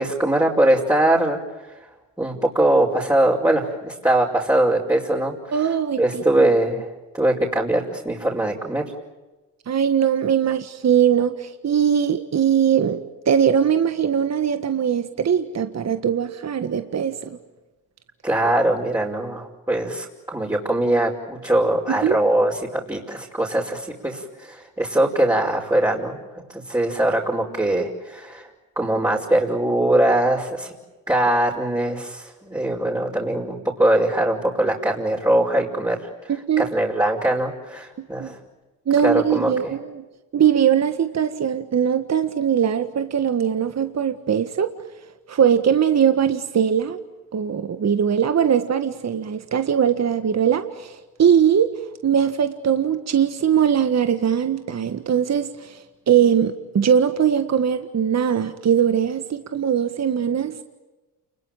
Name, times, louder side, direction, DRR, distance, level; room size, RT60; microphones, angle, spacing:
voice 1, 0.0-1.8 2.2-5.3 6.0-8.8 18.2-28.5 28.8-30.7 31.1-38.4 39.0-39.7, right 1 dB, 10° right, -3 dB, 5.3 m, -22 dB
voice 2, 5.5-6.2 9.7-17.4 22.0-22.2 36.3-36.7 38.2-38.3 38.9-40.0 40.3-44.7 45.3-47.0 47.3-51.7 52.0-60.6, right 8 dB, 45° right, 9 dB, 1.7 m, -21 dB
29.5 x 21.5 x 9.1 m, 1.1 s
supercardioid pair, 60°, 36 cm